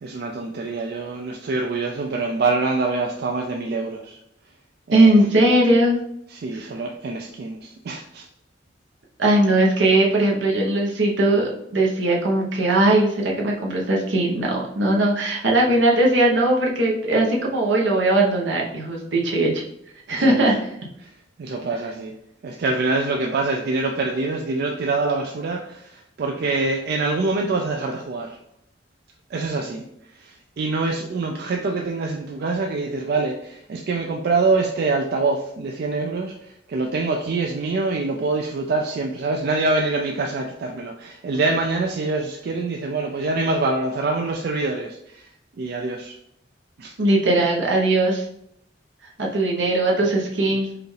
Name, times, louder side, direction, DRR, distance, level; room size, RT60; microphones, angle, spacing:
voice 1, 0.0-4.2 4.9-5.5 6.3-8.3 20.1-20.4 21.0-21.1 21.4-22.1 22.4-28.4 29.3-29.9 30.1-45.3 45.6-46.2 46.8-46.9, right 3 dB, 60° right, 2 dB, 0.4 m, -25 dB
voice 2, 4.9-6.0 6.5-6.6 9.2-19.6 20.1-20.6 47.0-48.2 49.2-50.7, right 1 dB, 80° right, -2 dB, 0.9 m, -19 dB
4.9 x 2.4 x 3.2 m, 0.75 s
head